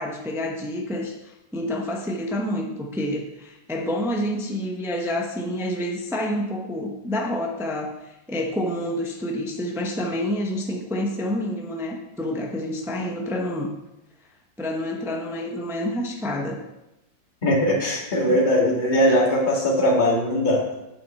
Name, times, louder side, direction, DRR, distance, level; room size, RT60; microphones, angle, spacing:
voice 1, 0.0-13.8 14.6-16.6 18.3-18.4, left 1 dB, ahead, 1 dB, 0.6 m, -28 dB
voice 2, 17.4-20.7, left 1 dB, 25° left, -3 dB, 1.9 m, -20 dB
8.6 x 7.8 x 4.2 m, 0.95 s
omnidirectional pair, 1.9 m